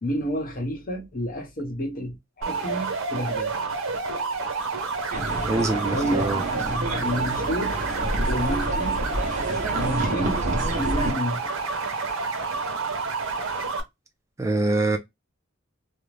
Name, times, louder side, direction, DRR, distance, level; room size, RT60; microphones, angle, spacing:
voice 1, 0.0-3.6 5.9-6.3 7.0-7.8 8.3-9.0 9.8-10.5 10.8-11.4, equal, 45° left, 0.8 m, -29 dB
sound 1, 2.4-13.8, right 4 dB, 75° right, 0.7 m, -29 dB
sound 2, 5.1-11.1, right 1 dB, 40° right, 0.8 m, -28 dB
voice 2, 5.5-6.4 14.4-15.0, right 2 dB, 15° right, 0.3 m, -24 dB
2.5 x 2.0 x 3.1 m
head